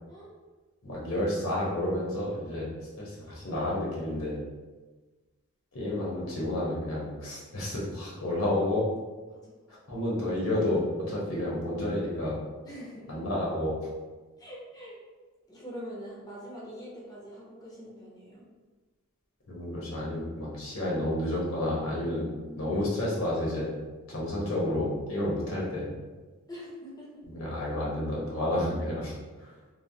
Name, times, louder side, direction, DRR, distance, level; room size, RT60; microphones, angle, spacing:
voice 1, 0.8-4.4 5.7-8.9 9.9-12.4 13.1-13.8 19.5-22.3 22.6-23.7 24.1-25.9 27.3-29.5, left 1 dB, 80° left, -5 dB, 0.9 m, -30 dB
voice 2, 12.6-13.2 14.4-15.0 15.5-18.4 22.1-22.7 26.5-27.5, equal, 20° left, -6 dB, 0.5 m, -44 dB
3.1 x 2.0 x 2.6 m, 1.3 s
head